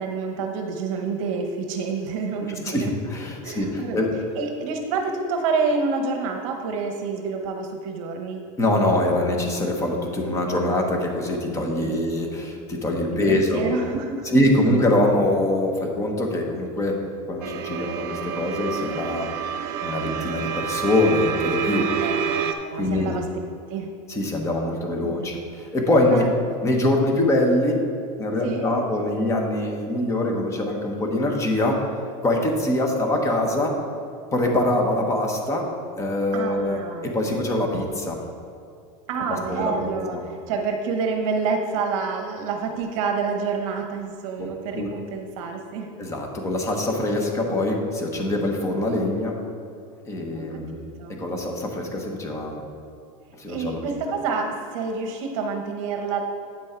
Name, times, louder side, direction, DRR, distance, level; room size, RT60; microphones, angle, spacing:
voice 1, 0.0-2.9 3.4-4.1 4.4-8.4 11.8-12.0 13.3-14.3 21.8-23.3 23.7-23.9 25.0-25.4 26.1-26.3 28.4-28.7 36.3-37.4 37.7-37.8 39.1-45.9 50.3-51.2 53.5-56.2, right 4 dB, 55° right, 4 dB, 0.9 m, -28 dB
voice 2, 2.6-4.1 8.6-13.6 14.3-19.3 19.8-21.9 22.7-23.2 24.1-26.3 26.6-27.8 28.2-31.9 32.2-33.7 34.3-35.7 36.0-38.2 39.5-40.2 44.4-44.9 46.0-49.4 50.0-50.8 51.2-52.6 53.4-53.8, left 1 dB, 15° left, 2 dB, 1.0 m, -23 dB
sound 1, 17.4-22.5, right 8 dB, 40° right, 0.5 m, -28 dB
8.8 x 6.3 x 4.4 m, 2.6 s
supercardioid pair, 160°, 20 cm